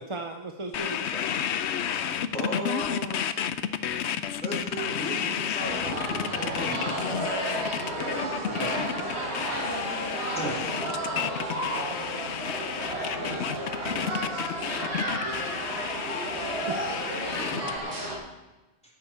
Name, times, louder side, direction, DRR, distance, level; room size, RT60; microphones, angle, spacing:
voice 1, 0.0-1.3 8.5-9.7 12.7-13.4 13.9-14.4 16.7-17.5, right 2 dB, 30° right, 4 dB, 0.7 m, -40 dB
sound 1, 0.7-17.8, left 9 dB, 80° left, 0.9 m, -31 dB
voice 2, 2.3-3.3 4.4-7.1 10.4-10.7, right 1 dB, 5° left, -4 dB, 3.8 m, -35 dB
sound 2, 5.6-18.2, right 1 dB, 75° right, 3.7 m, -32 dB
voice 3, 13.0-14.7 15.2-15.9 17.5-17.6, right 1 dB, 55° right, -4 dB, 5.8 m, -43 dB
14.0 x 10.5 x 4.4 m, 1.1 s
omnidirectional pair, 1.1 m